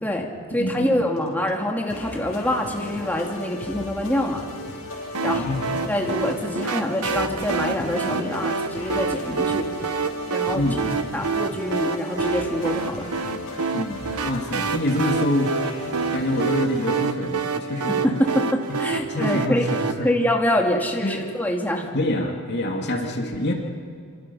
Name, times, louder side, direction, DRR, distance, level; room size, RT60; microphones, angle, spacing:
voice 1, 0.0-4.4 5.2-5.4 5.9-9.7 10.3-10.6 11.1-13.0 17.9-19.7 20.0-21.9, left 1 dB, 10° left, 0 dB, 2.5 m, -25 dB
voice 2, 0.6-1.1 5.2-5.7 10.5-11.3 13.7-15.6 16.1-18.2 18.9-20.1 21.0-21.3 21.9-23.5, left 1 dB, 50° left, 1 dB, 2.9 m, -26 dB
sound 1, 1.2-17.1, left 2 dB, 75° left, 7.6 m, -36 dB
sound 2, 5.1-19.9, right 5 dB, 85° right, 1.4 m, -27 dB
27.0 x 27.0 x 5.7 m, 2.3 s
head